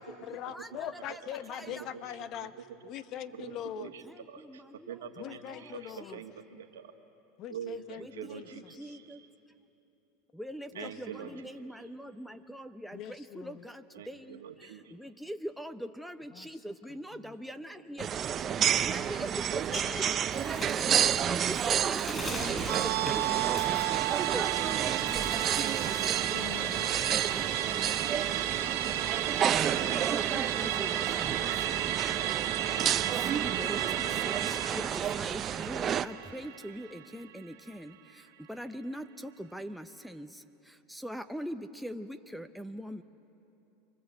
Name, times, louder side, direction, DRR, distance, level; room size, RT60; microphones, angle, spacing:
voice 1, 0.0-2.5 2.8-3.9 5.2-6.2 7.4-8.4 10.7-10.9 11.2-11.3 12.9-13.5 16.4-16.5 26.3-27.0, left 10 dB, 50° left, 12 dB, 1.0 m, -42 dB
voice 2, 0.5-1.2 1.5-1.9 4.0-4.6 5.5-5.6 6.1-6.2 8.0-9.2 10.4-14.4 14.9-23.9 24.3-25.8 27.4-27.9 29.8-31.8 33.3-34.5 34.7-34.9 35.2-37.9 38.5-40.3 40.9-43.0, equal, ahead, 11 dB, 0.7 m, -42 dB
voice 3, 1.6-6.9 7.5-9.2 10.7-11.3 13.9-14.9 19.1-19.2 27.9-28.6, right 8 dB, 90° right, 4 dB, 1.7 m, -45 dB
sound 1, 18.0-36.0, right 9 dB, 35° right, 0.6 m, -31 dB
Bird, 19.2-24.7 25.0-26.2 26.6-28.3, left 2 dB, 20° left, 7.3 m, -42 dB
Musical instrument, 22.7-37.4 37.7-37.8, right 13 dB, 75° right, 1.2 m, -33 dB
28.0 x 23.0 x 8.0 m, 2.9 s
supercardioid pair, 110°, 0 cm